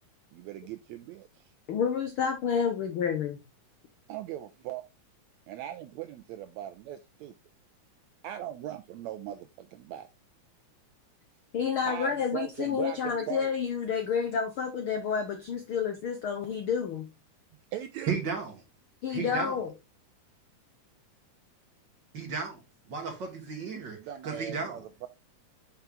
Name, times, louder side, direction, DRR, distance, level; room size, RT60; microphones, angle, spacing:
voice 1, 0.3-1.5 4.1-4.8 5.5-7.4 8.2-10.1 11.8-13.5 17.7-18.2 24.0-25.1, right 11 dB, 85° right, 1.6 m, -39 dB
voice 2, 1.7-3.4 11.5-17.1 19.0-19.7, left 6 dB, 75° left, 1.2 m, -29 dB
voice 3, 18.1-18.5 19.1-19.6 22.1-22.6 22.9-24.0 24.2-24.8, right 5 dB, 50° right, 1.4 m, -34 dB
5.9 x 5.6 x 3.7 m
omnidirectional pair, 3.7 m